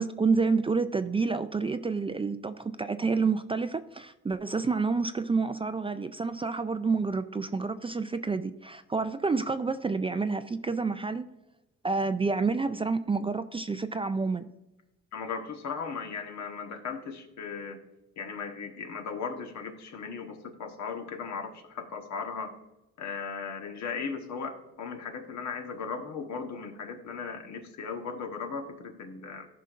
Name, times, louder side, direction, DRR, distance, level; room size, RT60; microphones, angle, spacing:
voice 1, 0.0-11.3 11.8-14.4, right 4 dB, 20° right, 10 dB, 0.4 m, -29 dB
voice 2, 15.1-17.8 18.2-22.5 23.0-29.5, left 5 dB, 65° left, 4 dB, 1.3 m, -37 dB
13.0 x 5.6 x 2.5 m, 0.96 s
cardioid pair, 90°, 30 cm